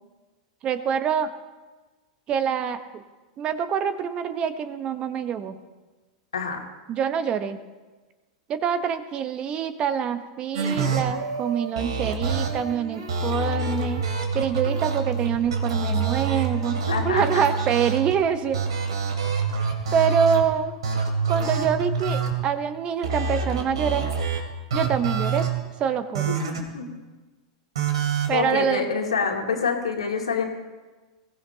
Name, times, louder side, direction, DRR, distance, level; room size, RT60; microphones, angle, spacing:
voice 1, 0.6-1.3 2.3-3.0 3.4-5.6 6.9-7.6 8.5-14.0 14.3-16.8 17.0-18.6 19.9-20.7 21.3-24.1 24.7-25.5 25.8-26.3 28.3-28.9, right 7 dB, 35° right, 10 dB, 1.1 m, -25 dB
sound 1, 10.5-18.1 18.5-20.4 20.8-22.3 23.0-24.4 24.7-25.5 26.1-26.6 27.7-28.3, right 5 dB, 70° right, 2.7 m, -26 dB
voice 2, 16.9-17.4 26.3-26.9 28.3-30.4, left 5 dB, 80° left, 1 dB, 2.4 m, -26 dB
22.0 x 15.5 x 2.9 m, 1.2 s
hypercardioid pair, 95°, 3 cm